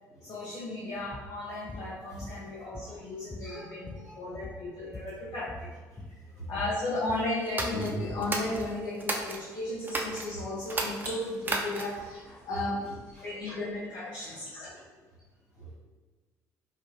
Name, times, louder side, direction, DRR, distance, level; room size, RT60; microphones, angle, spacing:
voice 1, 0.2-5.6 6.5-14.7, left 2 dB, 50° left, -7 dB, 0.8 m, -35 dB
sound 1, 1.1-1.3 1.7-1.9 2.2-3.0 3.3-5.1 5.4-5.7 6.0-6.2 6.6-6.8 7.1-8.8, left 3 dB, 15° left, 0.4 m, -43 dB
voice 2, 2.6-3.1 3.4-4.3 5.9-6.0 6.3-6.7 10.3-10.4 11.2-11.3 12.5-13.3 14.2-14.4 14.7-14.8 15.6-15.8, right 3 dB, 80° left, -10 dB, 1.4 m, -46 dB
sound 2, 7.5-9.4 9.8-10.3 10.7-12.1, right 2 dB, 20° right, 0.7 m, -33 dB
sound 3, 8.0-13.4, right 1 dB, 85° right, 0.9 m, -50 dB
4.6 x 2.3 x 2.8 m, 1.4 s
figure-of-eight pair, 50°, 9 cm